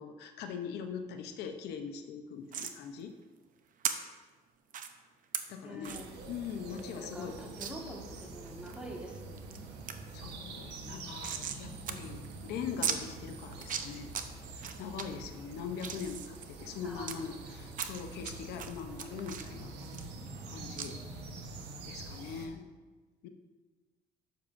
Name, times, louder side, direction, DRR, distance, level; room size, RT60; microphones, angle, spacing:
voice 1, 0.0-3.1 5.5-6.0 6.2-7.4 10.1-14.1 14.6-19.7 20.4-21.0 21.8-22.7 23.2-23.3, left 7 dB, 80° left, 6 dB, 0.7 m, -41 dB
sound 1, 2.5-2.8 3.8-3.9 4.7-4.9 5.3-5.4 5.8-6.1 6.4-6.5 6.8-6.9 7.6-7.7 8.2-8.8 9.2-9.6 9.9-10.0 10.2-11.6 11.9-12.0 12.2-12.3 12.8-13.0 13.5-14.2 14.6-15.0 15.5-17.1 17.7-18.3 18.6-20.5 20.8-20.9, right 8 dB, 50° right, 0.7 m, -37 dB
voice 2, 5.6-6.2 6.8-9.7 10.9-11.1 16.8-17.2 22.4-22.8, equal, 5° right, -1 dB, 1.6 m, -47 dB
sound 2, 5.8-22.5, right 3 dB, 80° right, 1.1 m, -46 dB
11.5 x 7.1 x 2.6 m, 1.3 s
cardioid pair, 110°, 17 cm